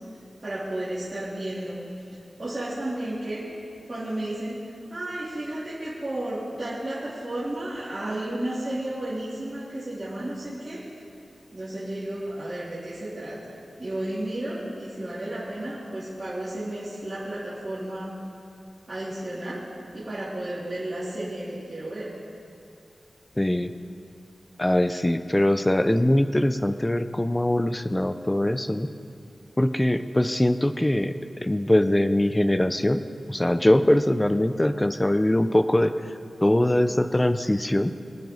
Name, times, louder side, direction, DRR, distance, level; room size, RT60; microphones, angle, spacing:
voice 1, 0.4-1.8 2.4-3.5 3.9-4.6 4.9-10.8 11.5-13.5 13.8-18.2 18.9-19.6 19.9-22.1, right 1 dB, 35° right, -12 dB, 3.5 m, -32 dB
voice 2, 23.4-23.7 24.6-28.9 29.6-31.1 31.4-33.0 33.3-35.9 36.4-37.9, left 1 dB, 15° left, 10 dB, 0.5 m, -22 dB
24.5 x 9.1 x 4.1 m, 2.7 s
wide cardioid pair, 110°, 0 cm